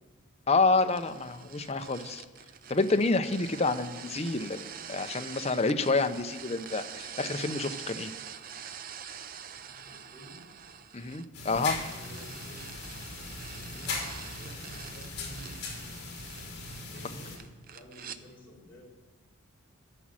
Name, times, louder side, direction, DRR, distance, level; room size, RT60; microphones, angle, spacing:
voice 1, 0.5-2.2 2.7-4.6 4.9-8.1 10.9-11.8, left 3 dB, 30° left, 8 dB, 0.5 m, -28 dB
sound 1, 0.7-18.2, right 8 dB, 40° right, 0.5 m, -45 dB
voice 2, 9.6-10.4 11.6-12.7 13.6-15.6 16.8-17.4 17.7-18.8, equal, 10° left, -7 dB, 3.6 m, -51 dB
sound 2, 11.3-17.4, left 3 dB, 50° left, 2.7 m, -39 dB
12.5 x 6.1 x 7.5 m, 1.2 s
head